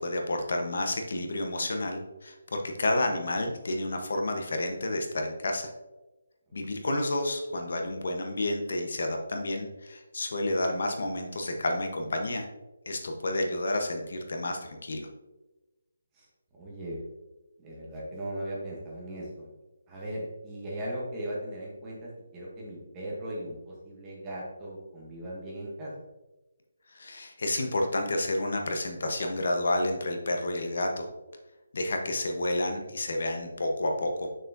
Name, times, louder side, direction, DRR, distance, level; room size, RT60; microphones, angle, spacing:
voice 1, 0.0-5.7 6.5-12.5 12.9-15.1 26.9-31.1 31.7-34.3, left 1 dB, 50° left, 3 dB, 0.9 m, -30 dB
voice 2, 16.5-17.0 17.6-19.5 19.9-25.9, right 1 dB, 10° right, -5 dB, 0.9 m, -38 dB
6.7 x 6.4 x 2.6 m, 1.1 s
hypercardioid pair, 180°, 0 cm